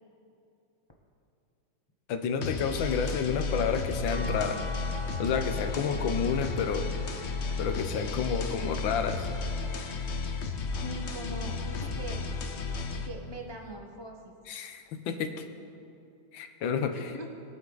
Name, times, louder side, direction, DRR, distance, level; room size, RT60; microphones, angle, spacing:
voice 1, 2.1-4.6 5.2-6.8 7.6-9.3 14.5-15.4 16.3-17.1, left 6 dB, 85° left, 7 dB, 1.6 m, -30 dB
sound 1, 2.4-13.1, left 4 dB, 55° left, 0.8 m, -33 dB
sound 2, 4.1-10.4 11.0-12.3 13.7-13.8, right 1 dB, 75° right, 1.8 m, -48 dB
voice 2, 10.8-12.2 12.9-14.3 16.9-17.3, equal, 25° left, 1 dB, 0.6 m, -41 dB
22.0 x 7.8 x 4.0 m, 2.6 s
omnidirectional pair, 2.1 m